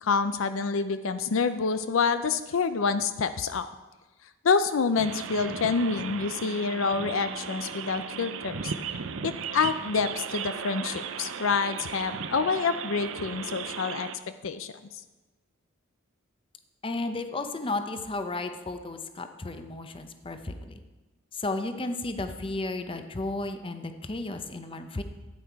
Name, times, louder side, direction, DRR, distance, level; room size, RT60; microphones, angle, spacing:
voice 1, 0.0-3.7 4.4-8.7 9.2-14.1 14.4-14.7, left 5 dB, 70° left, 11 dB, 0.5 m, -27 dB
sound 1, 5.0-14.2, right 6 dB, 70° right, 0.6 m, -36 dB
voice 2, 16.8-20.5 21.3-25.0, left 2 dB, 25° left, 8 dB, 0.7 m, -33 dB
12.5 x 8.5 x 4.7 m, 1.2 s
head